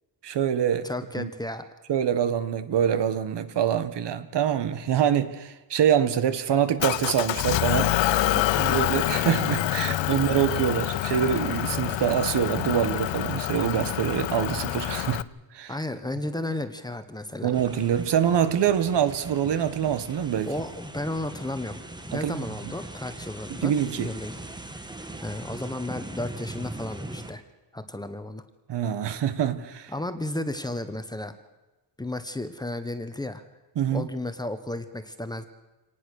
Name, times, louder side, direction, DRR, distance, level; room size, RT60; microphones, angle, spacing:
voice 1, 0.2-0.9 1.2-1.3 1.9-15.2 15.5-15.7 17.4-20.5 22.1-22.4 23.6-24.1 28.7-29.9 33.8-34.1, right 9 dB, 65° right, 11 dB, 1.6 m, -25 dB
voice 2, 0.8-1.6 8.5-8.8 15.7-17.5 20.4-24.4 25.2-27.4 27.7-28.4 29.9-31.3 32.0-33.4 33.9-35.4, left 1 dB, 10° left, 9 dB, 1.1 m, -33 dB
Motor vehicle (road) / Engine, 6.8-15.2, left 14 dB, 80° left, 0.7 m, -26 dB
sound 1, 17.5-27.3, right 1 dB, 10° right, 1.4 m, -40 dB
26.5 x 19.0 x 6.6 m, 1.1 s
wide cardioid pair, 165°, 44 cm